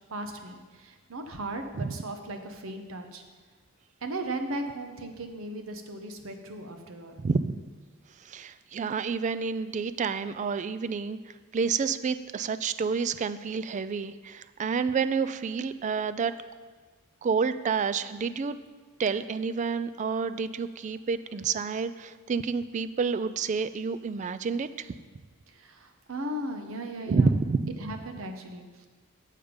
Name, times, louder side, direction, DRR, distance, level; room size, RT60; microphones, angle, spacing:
voice 1, 0.1-3.2 4.0-7.2 25.5-27.3 27.8-28.8, right 1 dB, 75° right, 5 dB, 0.9 m, -37 dB
voice 2, 7.2-7.6 8.3-11.2 11.5-16.3 17.2-18.6 19.0-24.9 27.1-27.7, right 5 dB, 35° right, 14 dB, 0.3 m, -29 dB
8.7 x 6.5 x 5.1 m, 1.4 s
head